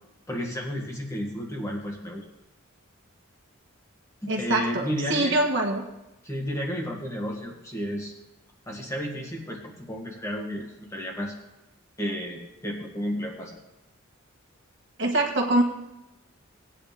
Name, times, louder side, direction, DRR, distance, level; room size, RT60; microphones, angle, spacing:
voice 1, 0.3-2.3 4.2-5.4 6.2-8.1 8.7-11.3 12.0-13.6, equal, 15° left, 0 dB, 1.9 m, -32 dB
voice 2, 4.3-5.8 15.0-15.6, right 1 dB, 55° right, 1 dB, 1.7 m, -24 dB
18.5 x 9.2 x 3.6 m, 0.93 s
head